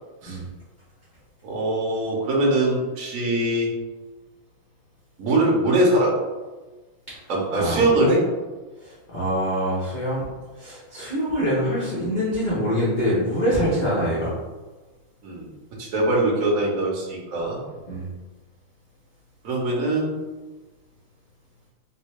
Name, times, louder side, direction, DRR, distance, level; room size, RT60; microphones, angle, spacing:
voice 1, 1.4-3.7 5.2-6.1 7.3-8.2 15.2-15.5 15.8-17.6 19.4-20.1, right 1 dB, 55° right, -3 dB, 1.0 m, -22 dB
voice 2, 8.8-10.3 10.6-14.4 17.9-18.1, equal, 60° left, -10 dB, 0.4 m, -24 dB
3.6 x 2.6 x 3.1 m, 1.2 s
omnidirectional pair, 2.3 m